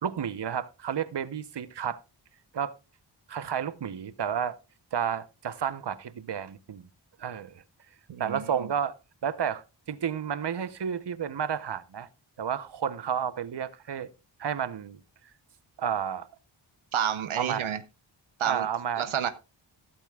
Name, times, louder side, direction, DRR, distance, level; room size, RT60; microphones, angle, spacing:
voice 1, 0.0-2.0 2.5-2.7 3.3-4.6 4.9-6.8 7.2-7.6 8.2-8.9 9.2-12.1 12.4-14.1 14.4-15.0 15.8-16.3 17.4-17.7 18.4-19.0, right 8 dB, 60° right, 0.9 m, -31 dB
voice 2, 8.1-8.4 16.9-17.8 18.4-18.7 19.0-19.3, right 9 dB, 85° right, 0.8 m, -29 dB
13.5 x 11.5 x 2.4 m
cardioid pair, 45°, 47 cm